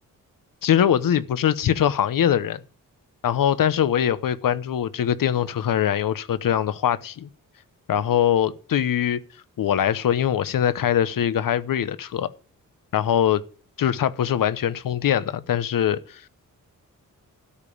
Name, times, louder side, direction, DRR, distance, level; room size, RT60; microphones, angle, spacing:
voice 1, 0.6-2.6 3.2-7.3 7.9-9.2 9.6-12.3 12.9-13.4 13.8-16.3, left 10 dB, 75° left, 1.0 m, -22 dB
13.0 x 5.2 x 8.6 m
wide cardioid pair, 130°, 34 cm